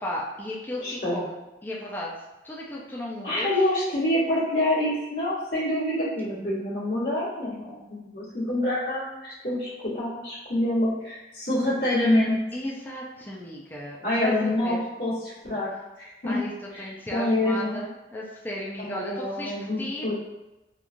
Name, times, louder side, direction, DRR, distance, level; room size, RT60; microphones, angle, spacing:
voice 1, 0.0-2.1 2.4-3.5 12.5-14.8 16.2-16.5 16.8-19.5 19.8-20.1, left 1 dB, 10° left, -4 dB, 0.3 m, -35 dB
voice 2, 0.8-1.2 3.2-12.4 14.0-15.1 15.4-15.7 16.0-16.4 16.7-17.8 18.8-20.1, left 1 dB, 60° left, -13 dB, 1.2 m, -26 dB
3.0 x 2.3 x 2.5 m, 0.99 s
head